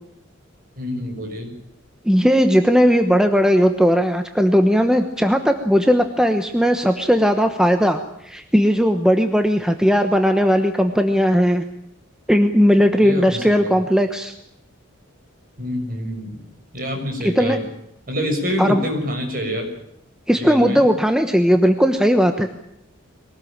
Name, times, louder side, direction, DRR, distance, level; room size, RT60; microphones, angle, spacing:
voice 1, 0.8-1.5 13.0-13.7 15.6-16.4 16.7-17.7 18.1-19.7 20.3-20.9, left 1 dB, 45° right, 3 dB, 6.4 m, -26 dB
voice 2, 2.0-11.6 12.3-14.3 17.2-17.6 18.6-18.8 20.3-22.5, equal, 5° right, 6 dB, 1.1 m, -17 dB
23.0 x 18.5 x 8.9 m, 0.80 s
head